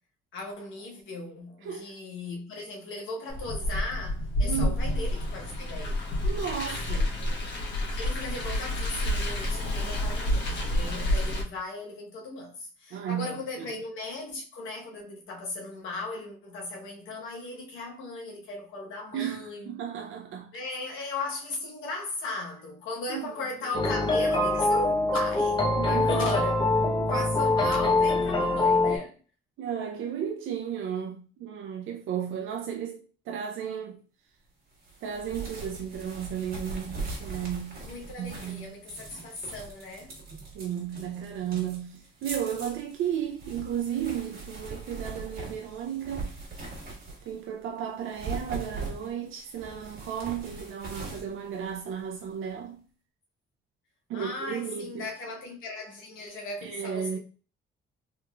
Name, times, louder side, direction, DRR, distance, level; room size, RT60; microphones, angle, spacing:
voice 1, 0.3-6.1 8.0-19.7 20.5-26.6 27.1-29.1 37.9-40.2 54.1-57.2, left 2 dB, 85° left, 1.1 m, -37 dB
voice 2, 1.6-1.9 4.4-4.8 6.2-7.1 12.9-13.3 19.1-20.5 21.0-21.1 23.1-23.3 23.7-23.8 25.8-26.0 29.6-33.0 33.3-34.0 35.0-37.8 38.2-38.7 40.5-46.3 47.3-52.8 54.1-55.1 56.6-57.2, right 9 dB, 80° right, 0.5 m, -34 dB
Car, 3.3-11.4, left 1 dB, 60° left, 1.2 m, -29 dB
sound 1, 23.7-29.0, left 2 dB, 25° left, 0.8 m, -24 dB
sound 2, 34.8-47.5 48.0-52.3, right 3 dB, 50° right, 1.6 m, -41 dB
3.5 x 3.0 x 2.3 m
cardioid pair, 90°, 20 cm